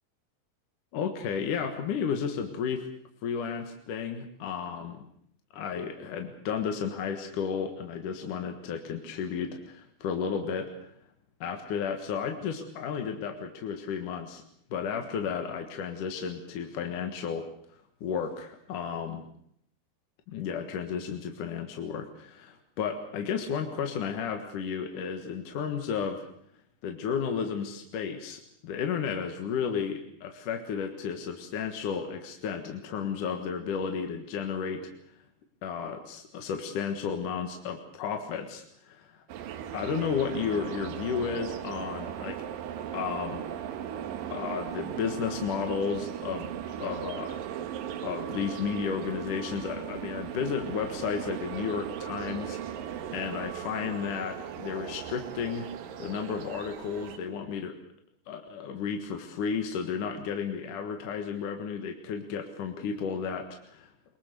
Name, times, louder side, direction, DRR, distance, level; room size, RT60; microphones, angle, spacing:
voice 1, 0.9-2.9 3.2-5.1 5.5-10.9 11.4-14.4 14.7-17.5 18.0-19.2 20.3-26.3 26.8-34.9 35.6-39.2 39.7-42.4 42.9-43.5 44.3-46.5 46.8-47.4 48.0-55.7 56.0-57.8 58.3-63.9, left 6 dB, 60° left, 5 dB, 2.9 m, -33 dB
sound 1, 39.3-57.2, right 10 dB, 70° right, 2.9 m, -38 dB
22.5 x 22.5 x 6.8 m, 0.69 s
omnidirectional pair, 4.3 m